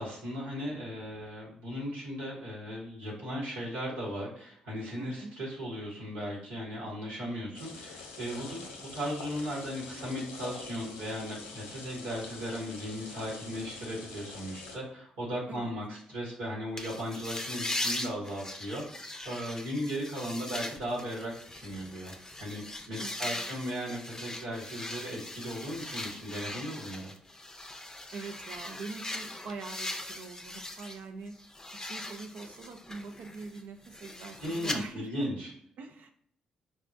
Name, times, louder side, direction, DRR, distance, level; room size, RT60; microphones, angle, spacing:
voice 1, 0.0-8.6 8.9-27.1 34.4-35.5, equal, 80° right, -5 dB, 1.2 m, -37 dB
voice 2, 5.0-5.3 15.5-15.7 23.0-23.5 28.1-31.3 31.8-35.3 35.8-36.1, right 4 dB, 60° right, 5 dB, 0.5 m, -43 dB
sound 1, 7.5-14.8, left 4 dB, 80° left, 0.5 m, -45 dB
sound 2, 16.8-31.0 31.3-34.8, left 1 dB, 15° left, 0.6 m, -40 dB
4.6 x 2.0 x 2.6 m, 0.66 s
hypercardioid pair, 45°, 3 cm